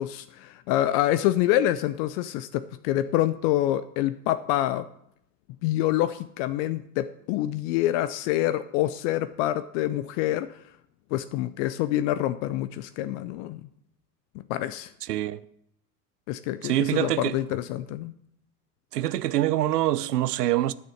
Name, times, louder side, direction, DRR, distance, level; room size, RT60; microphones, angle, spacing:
voice 1, 0.0-4.9 5.6-10.6 11.1-13.6 14.5-14.9 16.3-18.1, left 13 dB, 55° left, 0.6 m, -26 dB
voice 2, 15.1-15.4 16.6-17.4 18.9-20.7, right 14 dB, 85° right, 0.6 m, -25 dB
9.3 x 6.5 x 8.4 m
hypercardioid pair, 75°, 46 cm